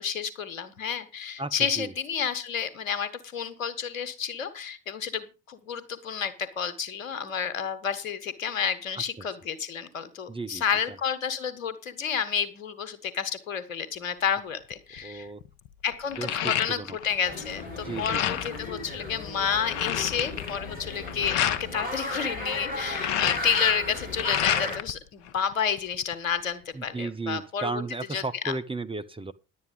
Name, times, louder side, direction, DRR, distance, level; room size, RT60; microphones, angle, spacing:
voice 1, 0.0-15.3 15.8-27.8 28.1-28.5, left 7 dB, 80° left, 1.4 m, -30 dB
voice 2, 1.4-1.9 10.3-10.6 15.0-15.4 16.2-17.0 17.8-18.4 26.7-29.3, right 3 dB, 15° right, 0.9 m, -34 dB
sound 1, 14.7-15.0 15.4-17.2 17.5-18.6 19.1-19.2 19.4-21.6 22.7-24.9 25.3-26.1, left 11 dB, 60° left, 0.9 m, -30 dB
sound 2, 17.2-24.8, left 2 dB, 85° right, 3.3 m, -35 dB
11.0 x 8.8 x 5.3 m
figure-of-eight pair, 50°, 40 cm